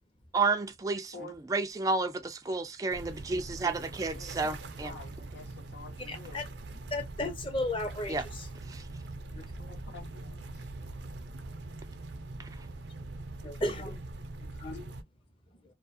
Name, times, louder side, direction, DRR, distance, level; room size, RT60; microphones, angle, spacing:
voice 1, 0.3-1.1 1.5-4.9 8.1-8.3 8.7-8.8 12.4-12.5, right 3 dB, 20° right, 0.3 m, -31 dB
sound 1, 2.9-15.0, right 2 dB, 80° right, 0.5 m, -43 dB
voice 2, 4.1-6.5 9.6-10.7 13.5-14.0 14.6-14.8, left 2 dB, 90° left, 1.0 m, -49 dB
voice 3, 6.1-6.4 6.9-8.2 13.4-13.9 14.6-14.9, left 1 dB, 30° left, 0.7 m, -33 dB
2.3 x 2.3 x 2.5 m
head